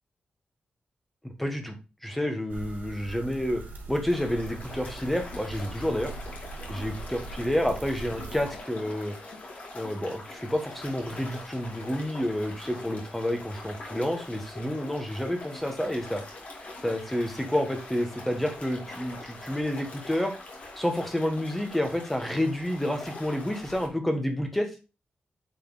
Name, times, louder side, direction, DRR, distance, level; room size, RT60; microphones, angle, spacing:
voice 1, 1.2-1.7 2.0-3.6 3.9-6.1 6.7-9.1 9.7-16.2 16.8-20.3 20.8-24.7, left 1 dB, 5° left, 4 dB, 1.3 m, -29 dB
sound 1, 2.5-8.6, right 3 dB, 85° right, 3.3 m, -42 dB
sound 2, 4.1-23.9, left 2 dB, 55° left, 2.3 m, -43 dB
8.8 x 4.2 x 4.0 m, 0.30 s
wide cardioid pair, 175°, 3 cm